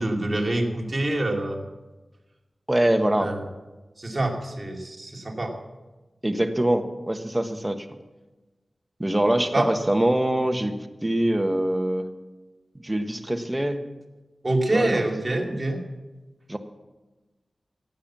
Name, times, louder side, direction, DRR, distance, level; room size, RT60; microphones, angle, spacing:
voice 1, 0.0-1.6 3.2-3.4 4.0-5.5 9.5-9.7 14.4-15.8, right 1 dB, 40° right, 1 dB, 2.5 m, -26 dB
voice 2, 2.7-3.3 6.2-7.9 9.0-12.1 12.8-13.8 14.7-15.0 16.5-16.6, right 1 dB, 15° right, 7 dB, 1.3 m, -24 dB
16.0 x 9.0 x 7.4 m, 1.2 s
wide cardioid pair, 60°, 0 cm